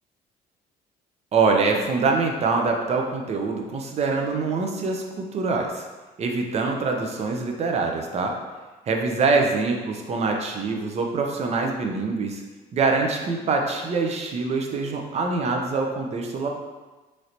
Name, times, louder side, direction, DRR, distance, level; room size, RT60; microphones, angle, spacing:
voice 1, 1.3-5.9 6.2-8.4 8.9-12.4 12.7-16.5, right 4 dB, 40° right, 2 dB, 0.5 m, -24 dB
3.1 x 2.8 x 2.6 m, 1.2 s
cardioid pair, 110°, 17 cm